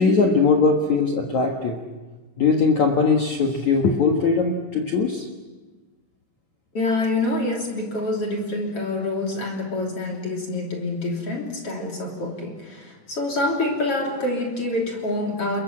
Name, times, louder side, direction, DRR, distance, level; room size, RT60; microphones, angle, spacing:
voice 1, 0.0-1.8 2.4-5.3, left 4 dB, 70° left, 2 dB, 1.7 m, -20 dB
voice 2, 6.7-15.6, left 2 dB, 35° left, 0 dB, 3.3 m, -26 dB
30.0 x 22.0 x 7.6 m, 1.2 s
omnidirectional pair, 5.9 m